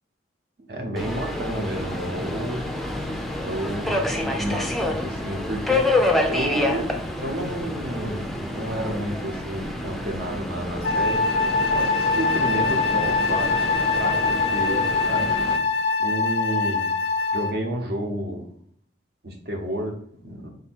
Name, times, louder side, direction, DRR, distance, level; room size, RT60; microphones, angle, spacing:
voice 1, 0.7-2.6 3.4-5.9 6.3-11.2 11.7-13.6 13.9-15.3 16.0-16.9 17.3-18.5 19.2-20.5, right 1 dB, 60° right, 3 dB, 0.9 m, -30 dB
Subway metro underground, 1.0-15.6, left 1 dB, ahead, 0.4 m, -28 dB
Wind instrument woodwind instrument, 10.8-17.6, left 4 dB, 65° left, 0.4 m, -23 dB
3.9 x 2.7 x 4.3 m, 0.66 s
head